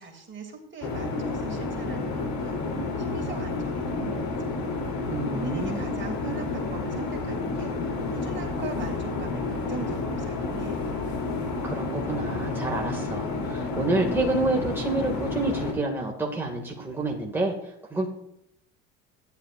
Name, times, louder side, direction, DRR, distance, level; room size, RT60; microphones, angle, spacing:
voice 1, 0.0-2.6 3.0-4.3 5.3-11.0, right 4 dB, 30° right, 1 dB, 2.8 m, -40 dB
sound 1, 0.8-15.7, left 3 dB, 65° left, 3.3 m, -30 dB
voice 2, 5.1-5.9 11.6-18.1, right 2 dB, 5° right, -1 dB, 2.1 m, -28 dB
13.5 x 10.5 x 2.5 m, 0.80 s
hypercardioid pair, 75°, 37 cm